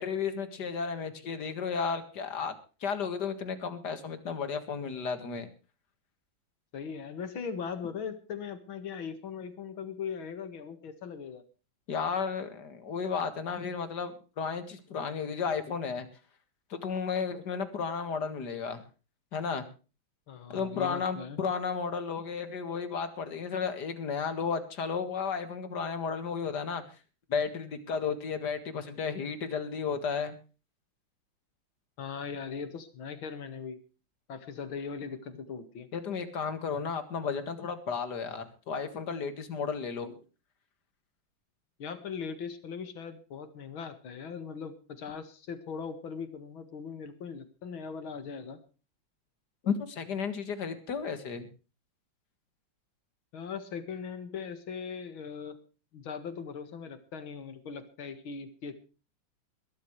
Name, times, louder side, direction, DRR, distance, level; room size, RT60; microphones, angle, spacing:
voice 1, 0.0-2.5 2.8-5.5 11.9-16.1 16.7-18.8 19.3-19.6 20.5-26.8 27.3-30.4 35.9-40.2 49.6-51.5, left 6 dB, 55° left, 9 dB, 2.3 m, -33 dB
voice 2, 6.7-11.4 20.3-21.4 32.0-33.8 34.3-35.9 41.8-48.6 53.3-55.6 55.9-58.8, left 6 dB, 75° left, 10 dB, 2.5 m, -39 dB
21.5 x 12.5 x 3.2 m, 0.35 s
omnidirectional pair, 2.3 m